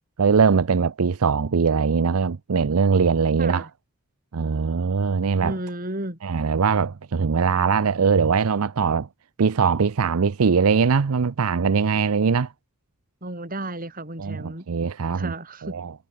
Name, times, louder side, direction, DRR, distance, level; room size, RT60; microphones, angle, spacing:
voice 1, 0.2-3.7 4.3-5.5 6.2-9.1 9.4-12.5 14.2-15.3 15.6-15.9, right 5 dB, 85° right, 0.6 m, -21 dB
voice 2, 3.4-3.7 5.4-6.2 13.2-14.7 15.1-15.8, right 1 dB, 40° right, 6.3 m, -33 dB
head